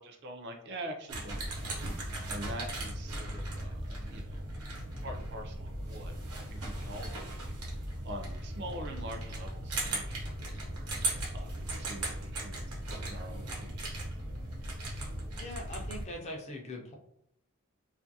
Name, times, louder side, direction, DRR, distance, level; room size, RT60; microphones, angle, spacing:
voice 1, 0.0-4.4 5.0-10.9 11.3-14.0, right 1 dB, 50° right, 4 dB, 0.4 m, -45 dB
sound 1, 1.1-16.1, right 1 dB, 85° right, 0.9 m, -37 dB
voice 2, 15.4-16.9, left 1 dB, 30° left, 1 dB, 0.4 m, -41 dB
2.5 x 2.4 x 2.6 m, 0.75 s
head